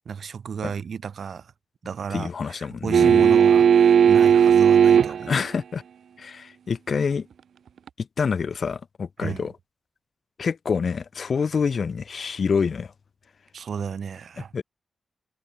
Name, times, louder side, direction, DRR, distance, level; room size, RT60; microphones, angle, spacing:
voice 1, 0.1-1.5 1.8-5.3 9.2-9.5 13.5-14.5, right 6 dB, 60° right, 7.2 m, -33 dB
voice 2, 2.1-3.3 5.3-5.8 6.2-7.3 8.0-9.5 10.4-12.9 14.5-14.6, left 5 dB, 45° left, 2.3 m, -27 dB
sound 1, 2.9-5.3 7.9-8.0, right 7 dB, 80° right, 2.1 m, -16 dB
wide cardioid pair, 180°, 0 cm